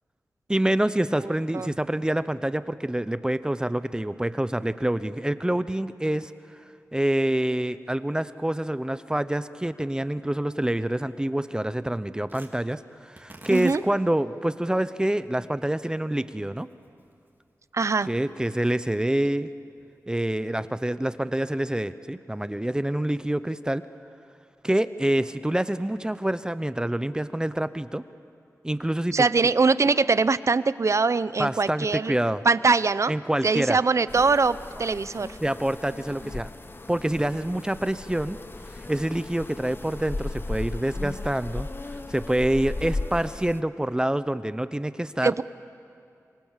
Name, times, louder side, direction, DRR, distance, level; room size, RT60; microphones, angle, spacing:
voice 1, 0.5-6.3 6.9-12.8 13.1-16.7 18.1-19.5 20.1-23.8 24.6-28.0 28.6-29.3 31.4-32.4 33.1-33.8 35.4-36.5 36.9-38.4 38.9-45.3, right 1 dB, 15° right, 13 dB, 0.7 m, -26 dB
Tearing, 12.3-20.6, right 2 dB, 35° right, 3.4 m, -54 dB
voice 2, 13.5-13.8 17.7-18.1 29.1-32.2 32.4-33.1 33.4-35.3 45.2-45.4, right 4 dB, 55° right, 16 dB, 0.6 m, -22 dB
sound 1, 34.1-43.6, left 2 dB, 35° left, 0.9 m, -36 dB
26.0 x 24.5 x 7.4 m, 2.5 s
wide cardioid pair, 70°, 6 cm